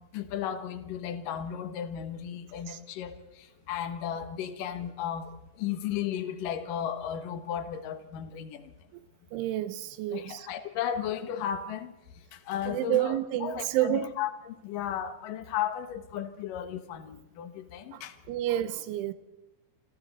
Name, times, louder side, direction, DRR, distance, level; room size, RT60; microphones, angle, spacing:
voice 1, 0.0-5.3 5.6-8.6 10.1-11.9 12.3-18.2, left 9 dB, 70° left, 2.1 m, -35 dB
voice 2, 9.3-10.5 12.7-14.1 17.9-18.0 18.3-19.1, right 13 dB, 80° right, 3.2 m, -29 dB
28.5 x 26.5 x 4.1 m
omnidirectional pair, 5.6 m